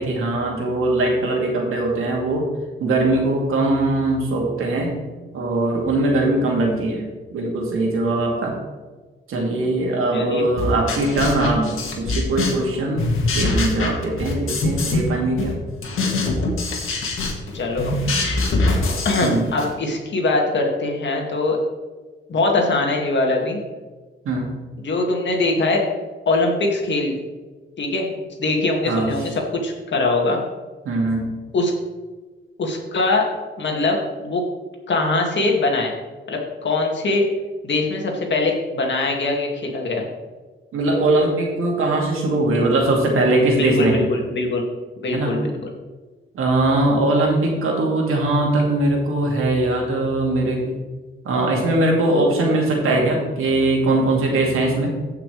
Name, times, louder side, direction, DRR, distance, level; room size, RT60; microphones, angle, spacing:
voice 1, 0.0-2.4 2.8-5.0 5.3-7.0 7.3-8.5 9.3-13.1 13.3-15.5 19.2-19.5 24.2-24.5 28.9-29.1 30.8-31.2 40.7-44.0 45.1-45.3 46.3-50.7 51.2-54.9, right 2 dB, 80° right, 0 dB, 2.4 m, -20 dB
voice 2, 10.1-10.5 17.5-18.0 19.0-21.6 22.3-23.6 24.8-25.8 26.3-27.2 27.8-30.4 31.5-31.7 32.6-33.3 33.6-34.4 34.9-35.9 36.3-37.2 37.6-40.0 43.5-44.6 45.0-45.5, left 2 dB, 60° left, 1 dB, 2.2 m, -22 dB
sound 1, 10.6-12.7 13.0-15.1 15.4-19.7, left 2 dB, 80° left, 1.9 m, -23 dB
15.5 x 5.9 x 3.3 m, 1.3 s
cardioid pair, 85°, 21 cm